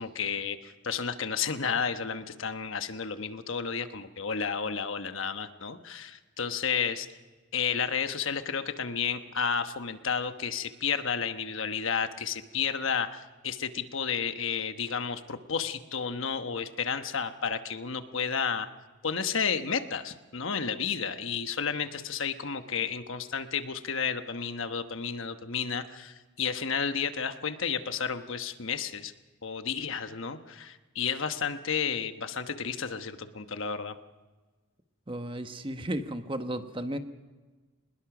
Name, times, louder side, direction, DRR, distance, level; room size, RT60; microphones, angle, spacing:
voice 1, 0.0-7.1 7.5-18.7 19.0-29.1 29.4-34.0, left 6 dB, 65° left, 9 dB, 1.1 m, -32 dB
voice 2, 35.1-37.0, right 1 dB, 25° right, 8 dB, 1.1 m, -34 dB
24.0 x 21.0 x 6.1 m, 1.3 s
head